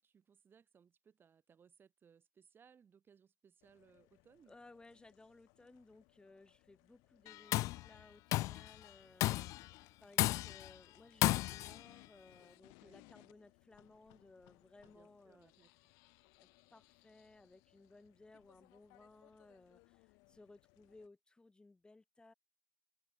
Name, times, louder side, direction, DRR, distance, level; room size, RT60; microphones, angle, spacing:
voice 1, 0.0-4.5 12.8-13.0 14.8-15.7, right 7 dB, 40° right, 5.1 m, -66 dB
sound 1, 3.6-21.1, left 30 dB, 85° left, 3.8 m, -67 dB
voice 2, 4.5-15.5 16.4-22.3, left 2 dB, 15° left, 5.5 m, -61 dB
Tools, 7.3-7.8 8.3-8.7 9.2-9.6 10.2-10.7 11.2-11.8, left 18 dB, 70° left, 0.4 m, -33 dB
open air
supercardioid pair, 100°, 6 cm